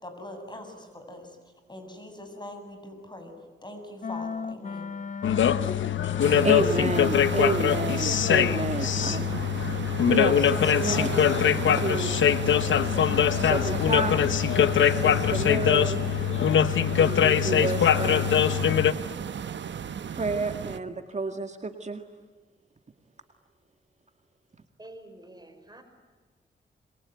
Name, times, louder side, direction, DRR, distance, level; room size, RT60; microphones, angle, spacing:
voice 1, 0.0-1.4 1.7-3.3 3.6-4.9, left 1 dB, 25° left, 5 dB, 7.7 m, -42 dB
sound 1, 4.0-7.8, left 5 dB, 40° left, 0.9 m, -36 dB
sound 2, 5.2-18.9, left 9 dB, 85° left, 1.1 m, -23 dB
sound 3, 6.2-20.8, right 8 dB, 70° right, 1.2 m, -35 dB
voice 2, 6.4-9.4 10.0-12.2 13.3-14.2 14.8-16.1 16.9-18.4 20.1-22.0, right 3 dB, 35° right, 6 dB, 2.0 m, -30 dB
voice 3, 24.8-25.8, right 1 dB, 20° right, 7 dB, 4.5 m, -47 dB
28.0 x 23.0 x 9.3 m, 1.4 s
cardioid pair, 75°, 19 cm